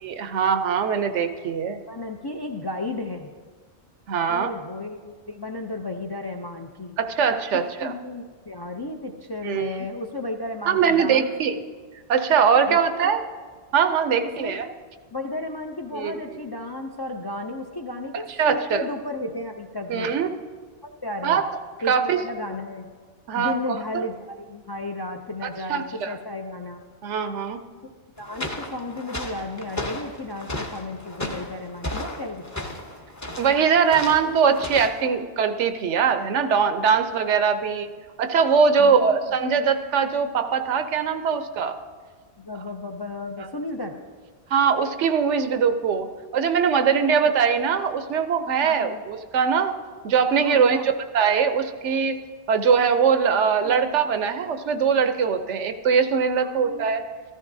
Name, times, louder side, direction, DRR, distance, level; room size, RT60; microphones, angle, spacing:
voice 1, 0.0-1.8 4.1-4.5 7.0-7.9 9.4-9.7 10.7-11.6 12.1-13.2 13.7-14.7 15.9-16.2 18.4-18.8 19.9-20.3 21.2-21.4 21.9-22.2 23.3-23.6 23.9-24.0 25.7-26.1 27.0-27.6 33.4-37.9 38.2-41.8 44.5-46.1 46.3-49.7 50.0-52.2 52.5-57.0, right 6 dB, 85° right, 9 dB, 1.0 m, -21 dB
voice 2, 1.9-3.3 4.3-7.0 7.8-11.3 12.7-13.2 14.2-14.7 15.1-20.1 20.8-21.5 21.8-22.9 23.3-26.8 28.2-32.8 38.8-39.2 42.4-44.0 48.6-49.0 50.4-50.9 53.6-53.8 56.4-56.9, left 2 dB, 40° left, 2 dB, 0.3 m, -34 dB
sound 1, 28.2-35.1, left 1 dB, 20° left, 0.7 m, -35 dB
14.5 x 13.5 x 2.7 m, 1.5 s
omnidirectional pair, 1.2 m